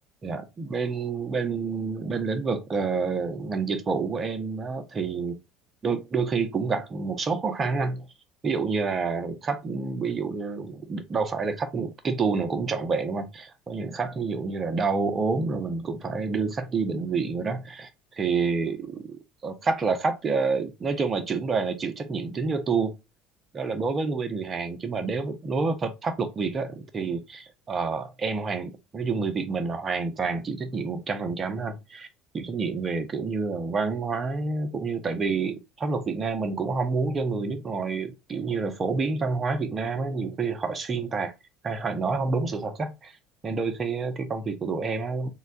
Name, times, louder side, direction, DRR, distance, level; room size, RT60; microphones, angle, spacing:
voice 1, 0.2-5.4 5.8-8.1 8.4-17.9 18.2-22.9 23.5-32.1 32.3-41.3 41.6-43.2 43.4-45.3, right 4 dB, 35° right, 0.7 m, -28 dB
3.7 x 2.2 x 2.5 m
hypercardioid pair, 70°, 0 cm